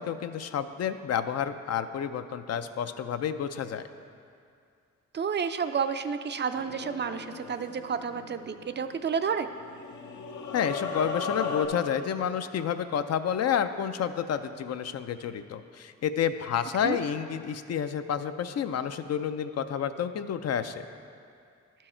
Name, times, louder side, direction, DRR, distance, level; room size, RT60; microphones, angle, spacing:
voice 1, 0.0-3.8 10.5-20.9, left 8 dB, 60° left, 10 dB, 0.4 m, -30 dB
voice 2, 5.1-9.5 16.8-17.0, right 6 dB, 40° right, 9 dB, 0.4 m, -30 dB
sound 1, 6.5-9.1 9.5-11.7, left 5 dB, 80° left, 0.9 m, -37 dB
11.5 x 4.6 x 4.3 m, 2.4 s
cardioid pair, 75°, 29 cm